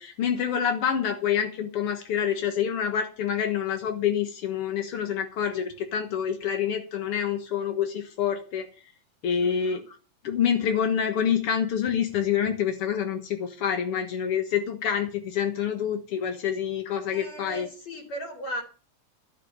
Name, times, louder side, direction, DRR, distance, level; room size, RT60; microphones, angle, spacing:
voice 1, 0.0-8.7 9.2-10.0 10.2-17.7, left 8 dB, 65° left, 6 dB, 1.4 m, -27 dB
voice 2, 9.4-9.8 17.1-18.6, right 1 dB, 45° left, 3 dB, 4.1 m, -37 dB
13.5 x 7.2 x 8.2 m, 0.37 s
omnidirectional pair, 4.5 m